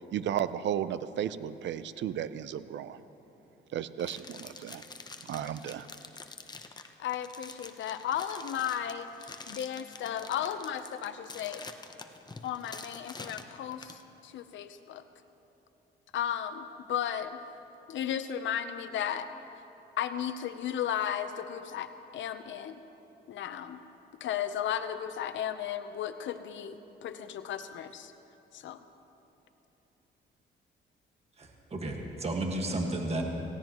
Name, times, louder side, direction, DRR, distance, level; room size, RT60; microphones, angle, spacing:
voice 1, 0.1-3.0 3.7-4.8 5.3-5.9, right 10 dB, 65° right, 14 dB, 0.6 m, -34 dB
sound 1, 4.0-14.0, left 3 dB, 20° left, 0.8 m, -46 dB
voice 2, 7.0-11.6 12.4-15.0 16.1-17.4 17.9-19.3 20.0-21.9 22.1-22.8 23.3-23.8 24.2-28.1 28.5-28.8, left 9 dB, 70° left, 10 dB, 0.8 m, -35 dB
voice 3, 31.4-33.2, right 1 dB, 30° right, 2 dB, 1.6 m, -33 dB
18.0 x 16.0 x 3.0 m, 3.0 s
cardioid pair, 90°, 20 cm